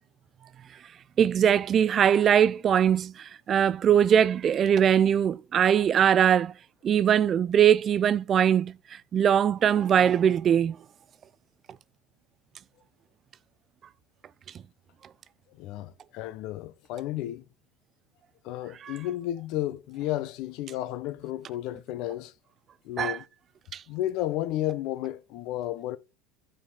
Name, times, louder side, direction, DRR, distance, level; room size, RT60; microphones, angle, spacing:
voice 1, 1.2-6.5 6.8-10.8 18.8-18.9 23.0-23.2 23.7-23.8, right 9 dB, 30° right, 0.4 m, -21 dB
voice 2, 15.6-17.4 18.4-22.3 22.8-23.2 23.9-26.0, left 14 dB, 55° left, 0.7 m, -32 dB
8.8 x 5.0 x 5.6 m
cardioid pair, 150°, 0 cm